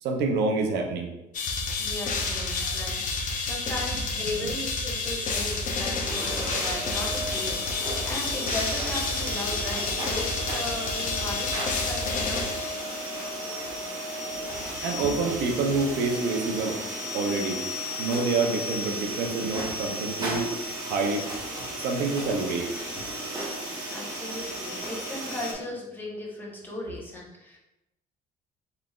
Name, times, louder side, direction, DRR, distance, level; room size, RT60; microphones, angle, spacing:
voice 1, 0.0-1.1 2.6-2.7 4.4-4.5 14.8-16.8 17.1-17.6 18.0-20.5 20.8-21.3 21.8-22.7, right 3 dB, 75° right, 2 dB, 0.6 m, -27 dB
sound 1, 1.3-13.2, left 3 dB, 50° left, 0.7 m, -30 dB
voice 2, 1.8-12.6 23.9-27.6, left 1 dB, 10° left, -4 dB, 1.0 m, -37 dB
sound 2, 5.9-25.5, equal, 25° right, 1.3 m, -34 dB
3.9 x 3.3 x 2.4 m, 0.94 s
cardioid pair, 110°, 17 cm